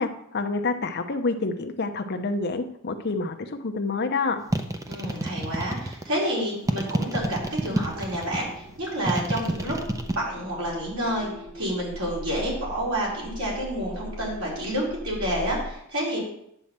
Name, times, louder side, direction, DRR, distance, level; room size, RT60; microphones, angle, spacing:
voice 1, 0.0-4.4, left 3 dB, 50° left, 6 dB, 0.7 m, -28 dB
sound 1, 4.5-6.1 6.7-8.4 9.1-10.2, right 1 dB, 15° right, 0.6 m, -27 dB
voice 2, 4.9-9.8 10.1-16.3, equal, 75° right, -5 dB, 4.3 m, -29 dB
sound 2, 7.2-15.7, equal, 55° right, 1.3 m, -40 dB
9.0 x 4.4 x 7.3 m, 0.73 s
head